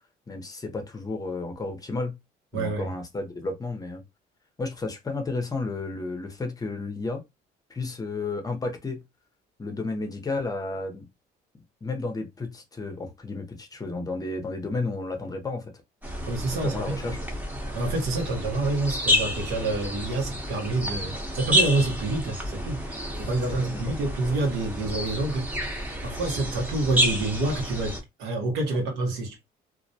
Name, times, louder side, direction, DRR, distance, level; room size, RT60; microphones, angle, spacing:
voice 1, 0.3-2.2 2.5-4.0 4.6-7.2 7.7-9.0 9.6-11.1 11.8-15.7 16.6-17.2 23.5-23.8, left 3 dB, 20° left, 0.6 m, -32 dB
voice 2, 2.5-2.9 16.2-17.2 17.7-29.4, right 2 dB, 90° right, 1.0 m, -28 dB
sound 1, 16.0-28.0, equal, 10° right, 0.8 m, -30 dB
2.4 x 2.1 x 2.6 m
cardioid pair, 110°, 17 cm